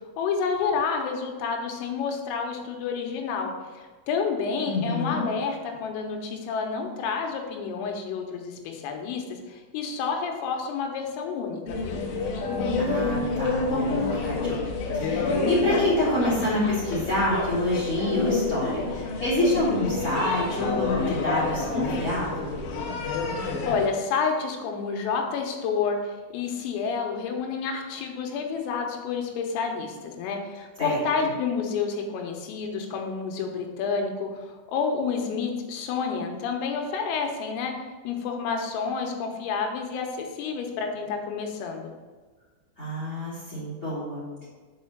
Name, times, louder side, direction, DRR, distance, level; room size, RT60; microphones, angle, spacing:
voice 1, 0.2-12.0 23.7-34.3 34.7-37.7 38.1-41.9, left 5 dB, 90° left, 2 dB, 3.7 m, -29 dB
voice 2, 4.6-5.2 12.8-14.6 15.0-22.6 30.8-31.0 42.8-44.5, left 1 dB, 20° left, -8 dB, 2.4 m, -27 dB
sound 1, 11.7-23.9, left 3 dB, 70° left, 2.6 m, -28 dB
6.8 x 5.5 x 7.2 m, 1.4 s
omnidirectional pair, 5.8 m